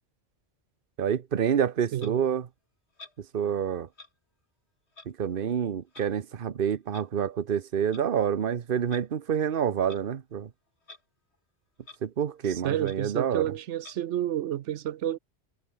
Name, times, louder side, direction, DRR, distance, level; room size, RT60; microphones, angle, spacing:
voice 1, 1.0-2.5 3.3-3.9 5.1-10.5 12.0-13.5, right 8 dB, 55° right, 1.1 m, -28 dB
Clock, 2.0-2.1 3.0-3.2 3.9-4.1 4.9-5.1 5.9-6.1 6.9-7.1 7.8-8.0 8.8-9.1 9.8-10.1 10.8-11.0 11.3-11.4 11.8-12.0 12.4-12.5 12.8-13.0 13.8-14.0, left 3 dB, 70° left, 3.4 m, -48 dB
voice 2, 12.4-15.2, right 12 dB, 85° right, 1.0 m, -30 dB
omnidirectional pair, 1.2 m